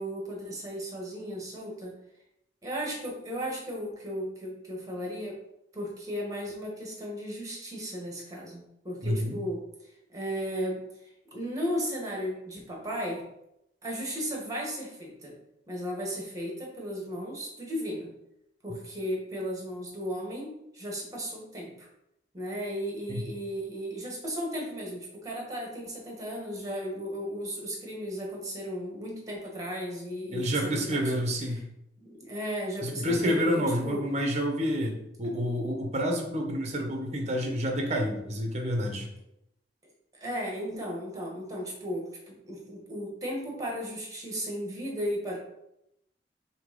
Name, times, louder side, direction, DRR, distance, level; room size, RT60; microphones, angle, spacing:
voice 1, 0.0-2.0 2.6-5.4 5.7-9.6 10.1-13.3 13.8-15.4 15.7-18.1 18.6-21.9 22.3-31.0 32.0-34.0 35.2-35.3 40.1-45.4, equal, 20° right, -1 dB, 1.9 m, -35 dB
voice 2, 9.0-9.4 23.1-23.2 30.3-31.6 32.8-39.1, equal, 40° right, 2 dB, 1.3 m, -29 dB
6.8 x 3.2 x 5.4 m, 0.82 s
head